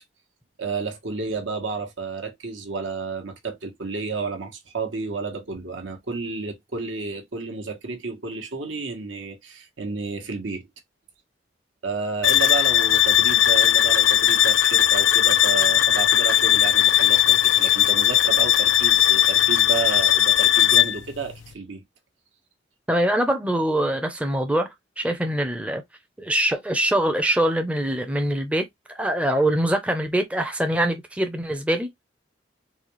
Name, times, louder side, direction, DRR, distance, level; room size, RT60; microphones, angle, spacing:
voice 1, 0.6-10.7 11.8-21.8, right 4 dB, 80° right, 1.1 m, -31 dB
sound 1, 12.2-21.0, left 12 dB, 75° left, 0.4 m, -18 dB
voice 2, 22.9-24.7 25.0-25.8 26.2-28.6 29.0-32.0, right 1 dB, 5° right, 0.4 m, -23 dB
4.0 x 2.3 x 3.0 m
head